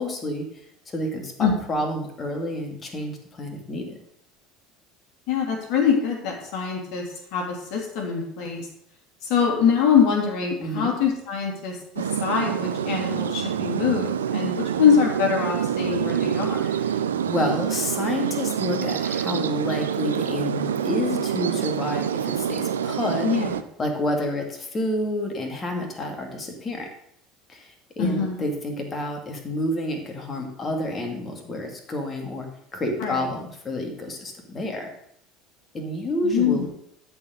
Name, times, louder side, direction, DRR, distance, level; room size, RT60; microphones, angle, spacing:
voice 1, 0.0-4.0 10.6-10.9 16.6-23.3 23.8-26.9 27.5-34.9 35.7-36.7, left 1 dB, 30° left, 2 dB, 2.5 m, -29 dB
voice 2, 5.3-8.7 9.2-16.7 23.2-23.5 28.0-28.4 33.0-33.2 36.2-36.7, left 7 dB, 55° left, 1 dB, 3.0 m, -24 dB
sound 1, 12.0-23.6, right 8 dB, 75° right, 0.5 m, -26 dB
13.0 x 4.8 x 6.6 m, 0.73 s
figure-of-eight pair, 65°, 0 cm